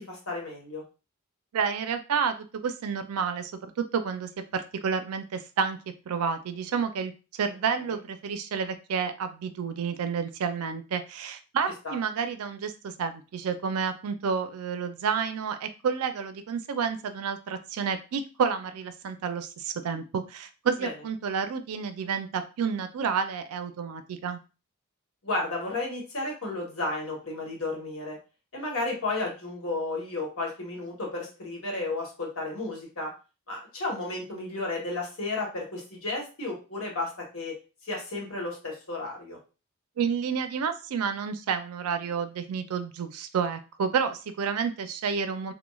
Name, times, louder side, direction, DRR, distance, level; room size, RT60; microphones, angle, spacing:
voice 1, 0.1-0.8 11.8-12.0 20.8-20.9 25.2-28.2 28.5-33.1 33.5-37.5 37.9-39.4, left 2 dB, 70° left, -1 dB, 1.1 m, -33 dB
voice 2, 1.5-2.3 2.6-5.8 6.1-7.1 7.4-24.4 40.0-45.5, right 6 dB, 80° right, 10 dB, 0.4 m, -30 dB
3.0 x 2.1 x 2.2 m, 0.32 s
head